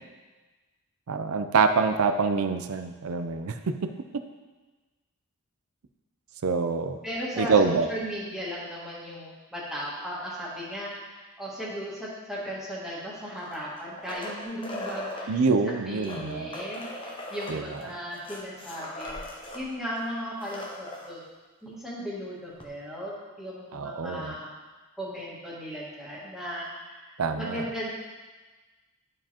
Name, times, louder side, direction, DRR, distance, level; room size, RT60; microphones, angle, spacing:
voice 1, 1.1-3.9 6.4-7.0 7.4-7.9 15.3-16.5 17.5-17.8 23.7-24.3 27.2-27.7, right 4 dB, 75° right, 8 dB, 0.5 m, -25 dB
voice 2, 7.0-15.4 15.8-19.2 19.5-21.2 21.6-24.5 25.0-27.9, equal, ahead, -8 dB, 1.7 m, -36 dB
sound 1, 13.3-15.3 15.9-19.6 20.0-20.1 20.3-21.1 22.6-22.7, left 1 dB, 25° left, 0.9 m, -39 dB
11.0 x 4.8 x 2.9 m, 1.3 s
head